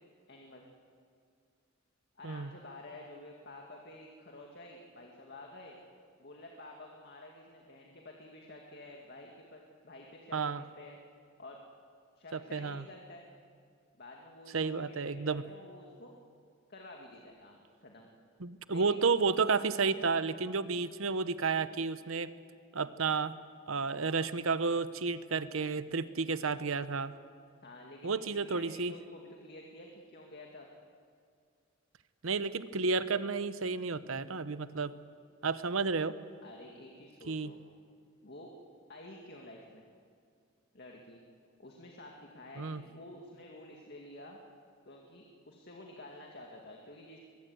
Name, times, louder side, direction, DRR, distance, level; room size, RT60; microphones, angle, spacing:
voice 1, 0.3-0.7 2.2-5.8 6.2-11.0 11.4-11.6 12.2-13.3 14.0-16.1 16.7-18.1 18.7-19.2 20.6-20.8 27.6-30.7 35.7-35.9 36.4-37.6 38.2-38.5 38.9-39.9 40.7-41.2 41.6-44.4 44.9-47.2, left 1 dB, 50° left, 0 dB, 2.1 m, -50 dB
voice 2, 10.3-10.6 12.3-12.8 14.5-15.4 18.4-22.3 22.7-23.3 23.7-27.1 28.0-28.9 32.2-34.9 35.4-36.1 37.3-37.5 42.6-42.8, right 4 dB, 70° right, 13 dB, 0.9 m, -31 dB
22.5 x 22.5 x 8.0 m, 2.1 s
head